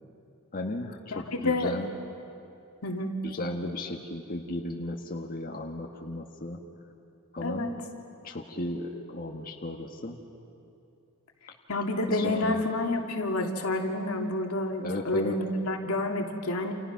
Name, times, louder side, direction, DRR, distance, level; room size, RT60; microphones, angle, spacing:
voice 1, 0.5-1.9 3.2-6.6 7.3-7.7 8.2-10.2 12.1-12.6 14.8-15.4, left 2 dB, 40° left, 1 dB, 1.6 m, -35 dB
voice 2, 1.1-1.7 2.8-3.2 7.4-7.7 11.7-16.7, left 2 dB, 85° left, 2 dB, 2.4 m, -29 dB
29.0 x 28.5 x 5.9 m, 2.6 s
head